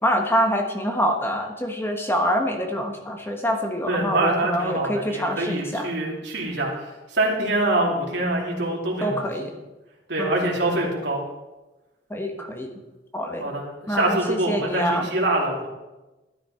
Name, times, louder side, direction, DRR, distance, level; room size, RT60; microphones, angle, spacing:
voice 1, 0.0-5.9 9.0-9.5 10.2-10.8 12.1-12.7 13.1-13.5 13.9-15.1, equal, 15° left, 3 dB, 1.3 m, -26 dB
voice 2, 3.9-9.2 10.1-11.2 13.4-15.7, right 2 dB, 70° right, -2 dB, 2.8 m, -25 dB
13.0 x 10.0 x 4.3 m, 1.1 s
head